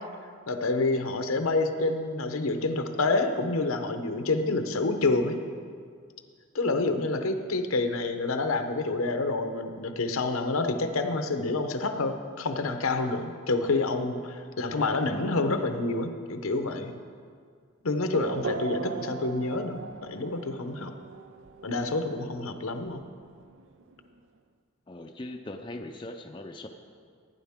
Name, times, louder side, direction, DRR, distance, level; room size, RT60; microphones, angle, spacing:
voice 1, 0.5-5.4 6.5-16.9 17.8-20.9 21.6-23.0, left 3 dB, 85° left, 7 dB, 0.8 m, -28 dB
Race car auto racing / Accelerating revving vroom, 18.1-24.2, right 5 dB, 60° right, 0.5 m, -39 dB
voice 2, 24.9-26.7, left 1 dB, 20° left, 3 dB, 0.5 m, -40 dB
16.0 x 9.9 x 3.6 m, 2.1 s
head